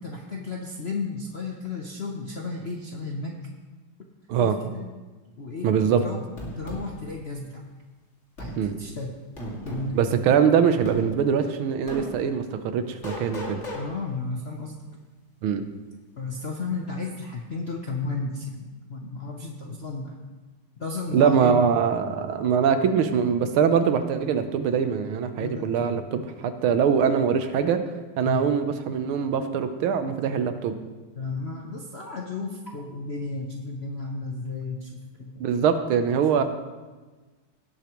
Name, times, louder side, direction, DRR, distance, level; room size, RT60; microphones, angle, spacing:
voice 1, 0.0-3.4 4.4-4.9 5.4-6.2 6.6-7.6 8.4-8.5 8.8-9.2 9.6-10.0 13.7-14.8 16.2-18.6 18.9-20.2 20.8-21.6 25.4-25.7 28.2-28.5 31.2-35.5, left 3 dB, 55° left, 0 dB, 0.7 m, -33 dB
voice 2, 5.6-6.0 8.5-8.7 9.9-13.6 15.4-15.6 21.1-27.8 28.2-30.8 35.4-36.4, right 7 dB, 80° right, 9 dB, 1.7 m, -23 dB
sound 1, 6.4-6.8 8.4-8.6 9.4-9.9 10.8-11.0 11.9-12.1 13.0-13.8, equal, 35° left, 2.4 m, -34 dB
18.0 x 8.3 x 3.1 m, 1.3 s
omnidirectional pair, 2.3 m